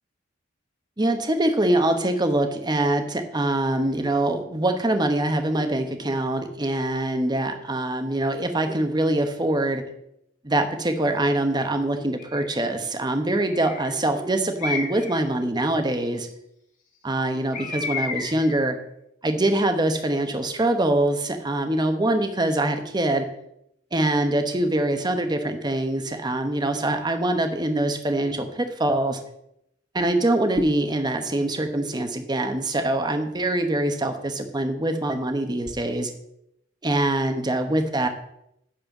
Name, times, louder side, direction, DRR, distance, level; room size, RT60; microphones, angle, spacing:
voice 1, 1.0-9.8 10.4-16.3 17.0-18.8 19.2-23.3 23.9-29.2 29.9-36.1 36.8-38.1, right 1 dB, 20° right, 6 dB, 1.0 m, -24 dB
Bird, 12.2-12.6 13.4-14.0 14.6-15.2 17.5-18.5, left 4 dB, 45° left, 2.5 m, -32 dB
10.5 x 4.4 x 7.3 m, 0.77 s
head